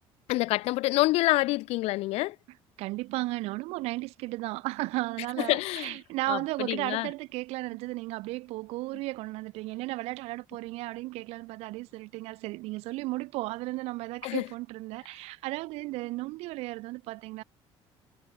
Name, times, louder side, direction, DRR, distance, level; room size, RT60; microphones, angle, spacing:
voice 1, 0.3-2.4 5.4-6.0 6.3-7.1 14.2-14.5, left 19 dB, 80° left, 1.1 m, -27 dB
voice 2, 2.8-17.4, right 21 dB, 85° right, 0.9 m, -34 dB
cardioid pair, 145°, 10 cm